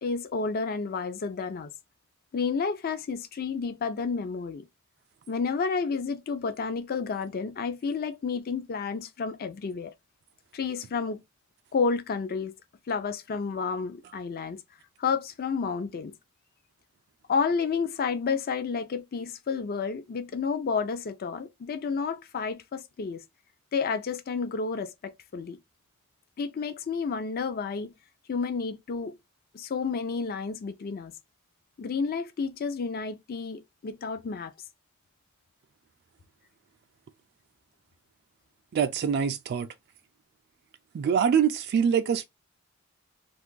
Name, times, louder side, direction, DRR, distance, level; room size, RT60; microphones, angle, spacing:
voice 1, 0.0-1.7 2.3-4.7 5.3-9.9 10.5-11.2 11.7-12.5 12.9-14.6 15.0-16.1 17.3-23.2 23.7-25.6 26.4-27.9 28.3-29.2 29.5-31.1 31.8-34.5, left 5 dB, 45° left, 0.4 m, -30 dB
voice 2, 38.7-39.7 40.9-42.2, right 7 dB, 50° right, 0.3 m, -24 dB
2.5 x 2.4 x 3.7 m
head